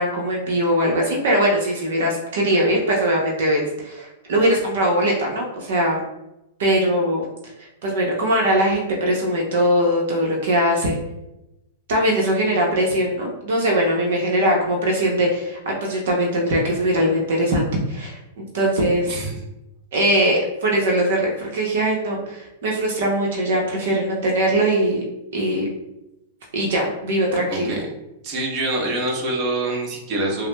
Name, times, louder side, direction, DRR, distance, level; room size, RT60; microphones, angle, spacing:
voice 1, 0.0-6.0 6.6-7.2 7.8-11.0 11.9-18.2 18.5-19.1 19.9-25.0 25.3-25.7 26.5-27.8, right 1 dB, 70° right, -1 dB, 0.8 m, -21 dB
voice 2, 19.1-19.4 27.5-27.9 28.2-30.5, right 2 dB, 40° right, -1 dB, 1.0 m, -25 dB
5.5 x 2.0 x 2.2 m, 0.91 s
hypercardioid pair, 130°, 0 cm